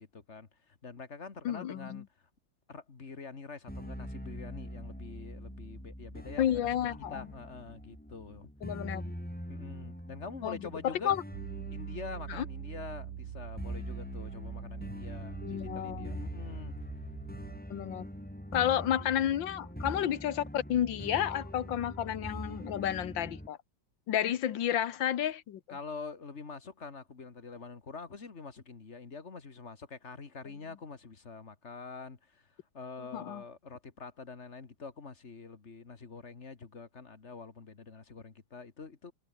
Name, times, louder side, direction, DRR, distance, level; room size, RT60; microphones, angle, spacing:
voice 1, 0.0-2.1 2.7-6.7 7.1-8.5 9.5-11.1 11.7-16.7 25.7-39.1, left 4 dB, 40° left, 2.2 m, -45 dB
voice 2, 1.5-2.0 6.4-7.3 8.6-9.1 10.4-10.6 10.8-11.2 12.3-12.5 15.4-16.3 17.7-18.1 18.5-23.6 24.1-25.6 33.0-33.4, left 10 dB, 90° left, 1.8 m, -31 dB
sound 1, 3.7-23.5, equal, 5° left, 5.5 m, -43 dB
Piano, 11.3-17.6, right 11 dB, 75° right, 1.7 m, -44 dB
omnidirectional pair, 2.0 m